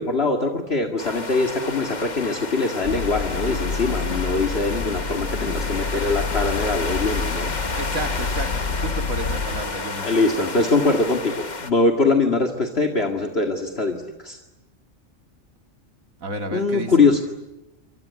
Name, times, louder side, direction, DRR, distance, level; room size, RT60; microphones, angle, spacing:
voice 1, 0.0-7.5 10.0-14.4 16.5-17.2, left 3 dB, 50° left, 3 dB, 2.4 m, -22 dB
sound 1, 1.0-11.7, left 3 dB, 35° left, 1.5 m, -31 dB
sound 2, 2.8-9.6, left 4 dB, 75° left, 7.6 m, -28 dB
voice 2, 7.7-10.6 16.2-17.1, right 2 dB, 85° right, 6 dB, 3.0 m, -32 dB
29.0 x 24.5 x 8.4 m, 0.96 s
omnidirectional pair, 1.4 m